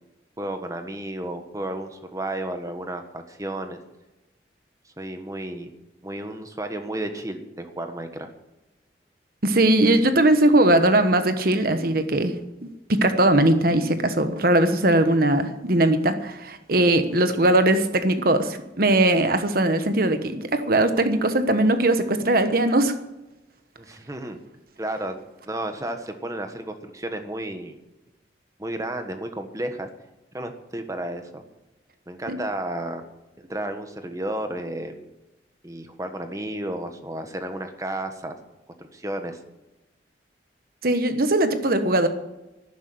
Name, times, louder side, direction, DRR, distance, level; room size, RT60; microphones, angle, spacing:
voice 1, 0.4-3.8 5.0-5.7 6.0-8.3 23.8-24.4 24.8-25.2 25.4-27.8 28.6-29.9 30.3-31.4 32.1-33.0 33.5-35.0 35.6-38.4 38.9-39.4, right 1 dB, 20° right, 7 dB, 1.3 m, -32 dB
voice 2, 9.4-12.4 12.9-22.9 32.3-32.4 40.8-42.1, right 1 dB, 50° right, 9 dB, 1.2 m, -20 dB
12.0 x 10.0 x 7.8 m, 1.0 s
head